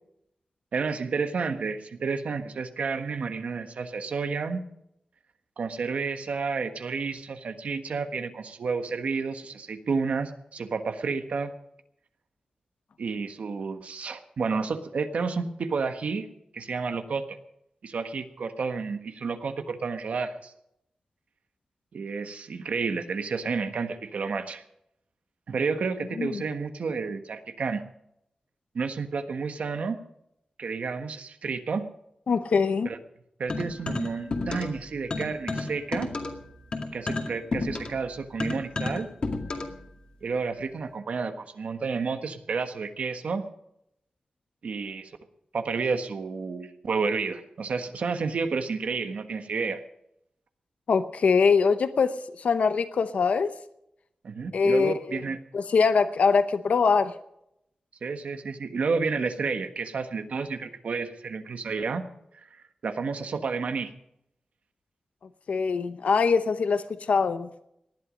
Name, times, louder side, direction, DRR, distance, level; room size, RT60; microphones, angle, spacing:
voice 1, 0.7-4.6 5.6-11.5 13.0-17.4 17.8-20.5 21.9-24.6 25.5-27.8 28.7-30.0 30.6-31.9 32.8-33.0 33.4-36.1 36.9-39.1 40.2-43.5 44.6-45.1 45.5-49.8 54.2-55.4 58.0-62.0 62.3-63.9, right 4 dB, 80° right, 8 dB, 1.4 m, -31 dB
voice 2, 32.3-32.9 50.9-52.1 52.4-53.5 54.5-55.2 55.5-57.1 65.5-67.5, left 5 dB, 85° left, 11 dB, 0.8 m, -23 dB
sound 1, 33.5-34.8 35.1-39.8, left 3 dB, 45° left, 2.2 m, -31 dB
19.0 x 11.5 x 5.2 m, 0.78 s
wide cardioid pair, 145°, 2 cm